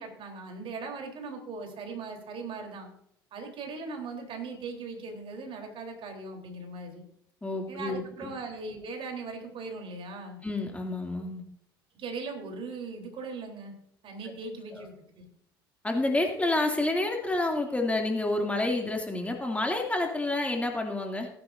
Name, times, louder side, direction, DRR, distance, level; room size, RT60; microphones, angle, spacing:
voice 1, 0.0-2.9 3.3-7.0 7.7-10.4 11.9-13.7 14.0-15.2, right 4 dB, 45° right, 3 dB, 3.7 m, -39 dB
voice 2, 7.4-8.3 10.4-11.4 14.7-14.9 15.8-21.3, left 2 dB, 10° left, 2 dB, 2.6 m, -29 dB
18.0 x 10.5 x 2.7 m, 0.72 s
hypercardioid pair, 70°, 12 cm